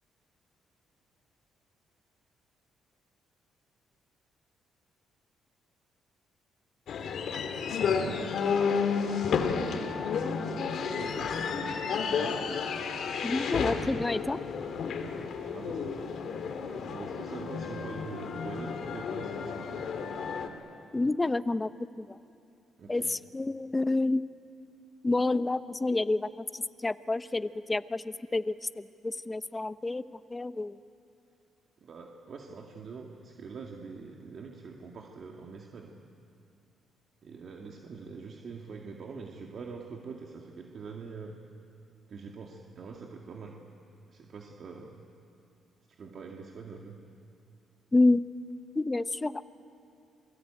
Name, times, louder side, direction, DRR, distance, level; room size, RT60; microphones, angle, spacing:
sound 1, 6.9-20.5, left 6 dB, 65° left, 2.5 m, -32 dB
voice 1, 9.8-12.4 14.9-16.1 16.8-20.0 22.8-23.1 31.8-36.0 37.2-41.4 42.1-43.6 44.1-45.0 45.9-47.0, right 5 dB, 55° right, 1 dB, 2.1 m, -44 dB
voice 2, 13.2-14.4 20.9-22.2 22.9-24.2 25.0-30.8 47.9-48.2 48.7-49.4, left 2 dB, 20° left, 14 dB, 0.8 m, -29 dB
27.5 x 22.0 x 9.0 m, 2.6 s
cardioid pair, 90°, 0 cm